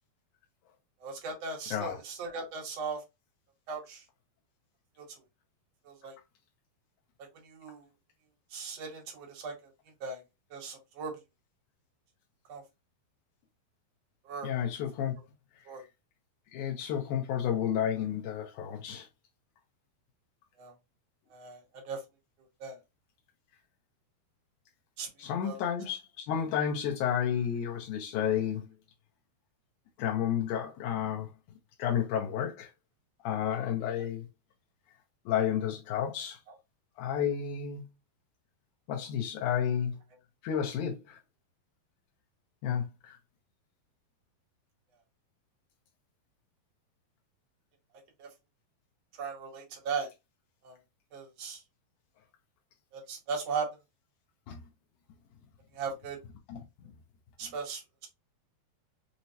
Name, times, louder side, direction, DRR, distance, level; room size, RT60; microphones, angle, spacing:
voice 1, 1.0-3.0 3.7-4.0 5.0-5.1 5.8-6.1 7.2-7.9 8.5-9.7 10.0-10.2 10.5-11.1 12.5-12.6 14.2-14.5 15.0-15.1 15.7-15.8 20.6-20.7 21.3-22.0 22.6-22.8 25.0-25.1 25.4-25.6 48.2-48.3 49.2-50.1 50.6-50.8 51.1-51.6 52.9-53.7 55.7-56.2 57.4-58.1, right 5 dB, 65° right, 1.6 m, -38 dB
voice 2, 14.4-15.1 16.5-19.1 25.2-28.6 30.0-31.3 31.8-32.7 33.2-34.3 35.3-36.4 37.0-37.9 38.9-39.9 40.4-41.2 42.6-43.2 54.5-54.6 56.5-56.6, left 9 dB, 80° left, 1.8 m, -31 dB
5.8 x 2.0 x 2.7 m
omnidirectional pair, 4.3 m